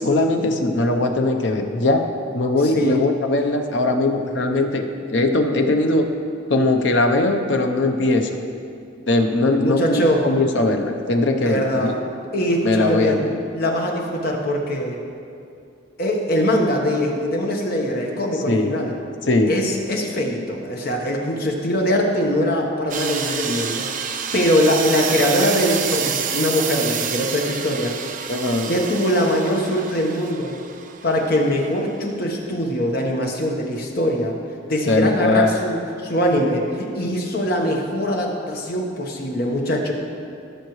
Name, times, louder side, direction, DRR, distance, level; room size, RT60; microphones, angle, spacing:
voice 1, 0.0-2.0 2.3-6.1 6.5-8.4 9.1-12.0 12.6-13.3 18.5-18.8 19.3-19.5 28.3-28.7 34.9-35.5, left 2 dB, 65° left, 5 dB, 0.8 m, -20 dB
voice 2, 2.6-3.0 9.6-10.3 11.4-11.9 12.3-13.2 13.5-15.0 16.0-18.9 19.5-23.9 24.3-27.9 28.7-30.6 31.0-34.3 34.7-39.9, equal, 50° left, 0 dB, 1.2 m, -22 dB
sound 1, 22.9-31.5, right 7 dB, 40° right, 0.5 m, -28 dB
16.5 x 6.6 x 3.2 m, 2.5 s
head